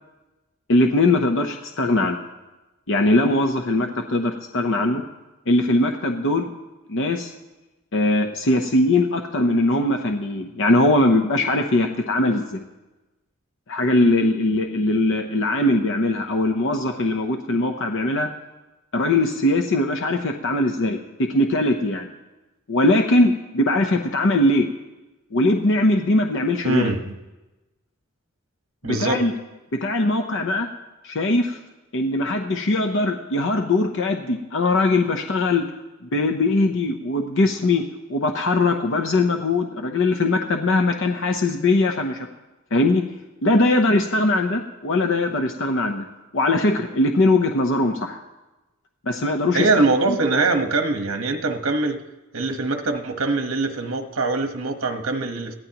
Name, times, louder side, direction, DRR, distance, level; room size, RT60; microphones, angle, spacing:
voice 1, 0.7-2.2 2.9-5.0 5.5-6.5 6.9-7.3 7.9-12.6 13.7-18.3 18.9-22.1 22.7-24.7 25.3-26.9 28.8-29.3 29.7-30.7 31.0-31.6 31.9-35.7 36.0-37.8 38.1-42.2 42.7-43.0 43.4-46.1 46.3-48.2 49.1-49.7 50.1-50.2, left 2 dB, 65° left, 4 dB, 0.8 m, -21 dB
voice 2, 26.6-27.2 28.8-29.2 49.5-52.0 52.3-55.5, right 3 dB, 70° right, 5 dB, 1.3 m, -23 dB
22.0 x 15.5 x 3.0 m, 1.1 s
head